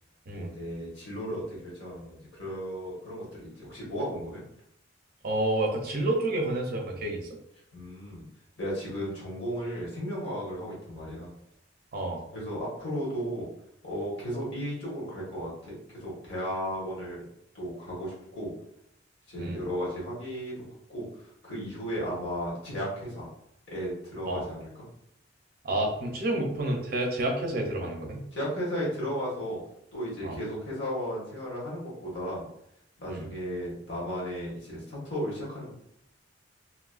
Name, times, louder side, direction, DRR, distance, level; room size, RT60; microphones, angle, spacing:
voice 1, 0.3-4.4 7.7-8.2 8.6-11.3 12.3-13.5 13.8-17.2 17.5-18.5 19.3-20.6 20.9-21.0 21.4-23.3 23.7-24.7 28.3-29.6 29.9-32.4 33.0-35.7, equal, 65° left, -6 dB, 1.3 m, -35 dB
voice 2, 5.2-7.3 11.9-12.2 19.4-19.6 24.3-24.4 25.6-28.2 30.2-30.4 33.1-33.3, right 1 dB, 50° right, 1 dB, 0.6 m, -29 dB
3.0 x 2.3 x 2.4 m, 0.77 s
head